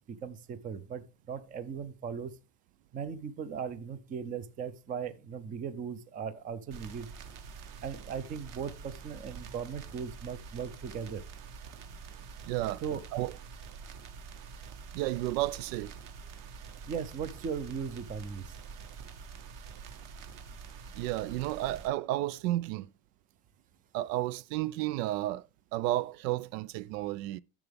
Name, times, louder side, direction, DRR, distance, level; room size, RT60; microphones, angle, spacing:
voice 1, 0.1-2.3 2.9-7.1 7.8-11.2 12.8-13.0 16.9-18.5, right 6 dB, 20° right, 0.4 m, -38 dB
sound 1, 6.7-21.9, right 6 dB, 40° right, 1.1 m, -47 dB
voice 2, 12.5-12.8 13.1-13.4 14.9-15.9 20.9-22.9 23.9-27.4, right 15 dB, 75° right, 0.5 m, -32 dB
10.5 x 7.1 x 3.4 m
cardioid pair, 150°, 49 cm